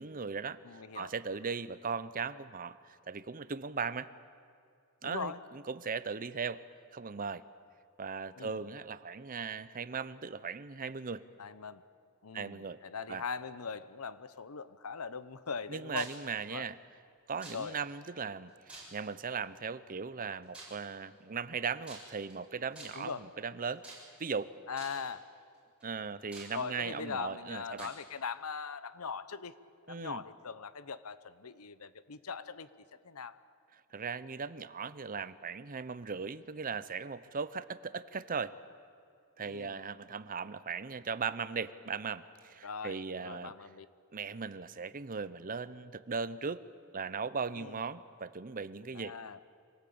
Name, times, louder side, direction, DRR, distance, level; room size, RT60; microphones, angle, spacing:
voice 1, 0.0-4.1 5.0-6.6 6.9-7.4 8.0-11.2 12.3-12.8 13.1-13.2 15.7-16.8 17.3-18.5 18.9-23.8 24.2-24.5 25.8-27.9 29.9-30.2 33.9-38.5 39.4-43.5 44.1-46.6 46.9-49.1, right 5 dB, 40° right, 15 dB, 0.7 m, -38 dB
voice 2, 0.6-1.1 5.0-5.4 8.4-8.6 11.4-11.8 12.2-16.1 16.5-16.7 17.5-17.7 22.9-23.3 24.7-25.3 26.5-29.5 29.9-32.7 33.0-33.4 39.4-39.8 42.6-43.9 47.5-47.8 48.9-49.4, left 5 dB, 80° left, 15 dB, 0.9 m, -40 dB
sound 1, 16.0-16.3 17.4-17.9 18.7-19.2 20.5-20.9 21.8-22.3 22.7-23.2 23.8-24.3 24.8-25.1 25.8-25.9 26.3-27.0 27.8-28.0, right 2 dB, 5° right, 6.6 m, -49 dB
25.5 x 18.5 x 8.7 m, 2.3 s
head